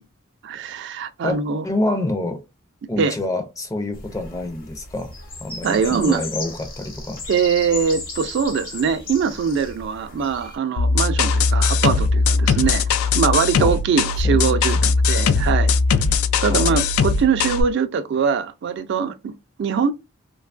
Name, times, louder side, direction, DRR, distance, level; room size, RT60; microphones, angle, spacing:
voice 1, 0.4-1.6 3.0-3.1 5.6-6.2 7.3-12.8 13.1-15.7 16.4-19.3 19.6-19.9, right 6 dB, 55° right, 0.3 m, -22 dB
voice 2, 1.6-2.4 2.9-5.1 5.4-7.2 13.6-13.8 14.2-14.9 16.5-16.8, left 2 dB, 15° left, 0.4 m, -27 dB
sound 1, 3.9-10.6, left 3 dB, 45° left, 0.8 m, -35 dB
sound 2, 10.8-17.6, left 4 dB, 85° left, 0.3 m, -19 dB
2.8 x 2.3 x 2.4 m
head